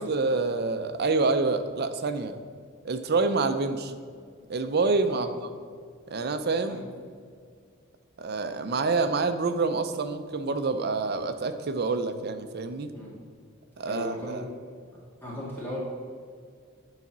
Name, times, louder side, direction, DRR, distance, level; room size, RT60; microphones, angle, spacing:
voice 1, 0.0-2.4 2.8-3.9 4.5-5.3 6.1-6.8 8.2-12.9 13.8-14.4, right 3 dB, 55° right, 9 dB, 0.6 m, -27 dB
voice 2, 13.8-14.4 15.2-15.8, equal, 10° left, -7 dB, 1.9 m, -36 dB
9.7 x 4.1 x 6.0 m, 2.1 s
head